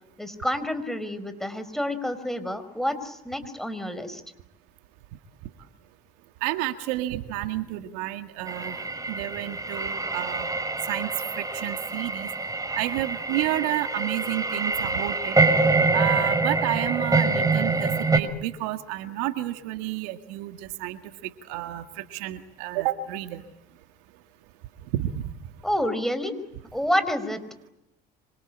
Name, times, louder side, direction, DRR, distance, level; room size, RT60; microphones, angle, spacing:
voice 1, 0.2-4.2 25.6-26.4 26.7-27.4, equal, ahead, 11 dB, 5.1 m, -28 dB
voice 2, 6.4-10.5 10.9-11.1 11.4-12.3 12.8-15.4 15.9-23.4 24.9-25.3, right 15 dB, 75° right, 8 dB, 1.9 m, -30 dB
sound 1, 8.5-18.2, right 3 dB, 15° right, 5.2 m, -25 dB
27.0 x 25.5 x 8.7 m, 0.87 s
hypercardioid pair, 70°, 21 cm